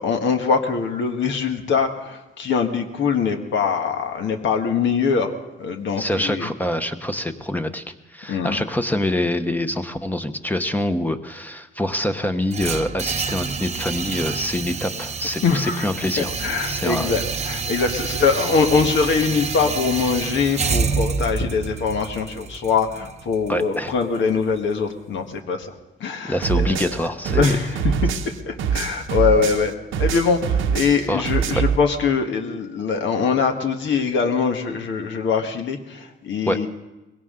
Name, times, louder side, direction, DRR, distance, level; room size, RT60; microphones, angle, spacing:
voice 1, 0.0-5.3 5.6-6.5 8.3-8.6 15.4-15.9 16.2-25.7 26.0-26.8 27.3-28.1 28.5-29.7 30.0-36.7, left 5 dB, 70° left, 4 dB, 1.5 m, -22 dB
voice 2, 6.0-7.8 8.1-16.3 16.6-17.2 23.5-23.9 26.3-27.6 31.1-31.3 36.5-36.7, left 1 dB, 10° left, 7 dB, 1.0 m, -25 dB
sound 1, 12.5-24.6, right 5 dB, 35° right, 0.8 m, -28 dB
sound 2, 26.4-29.7 29.9-31.8, right 7 dB, 85° right, 1.1 m, -23 dB
21.5 x 17.0 x 3.8 m, 1.0 s
cardioid pair, 90°, 20 cm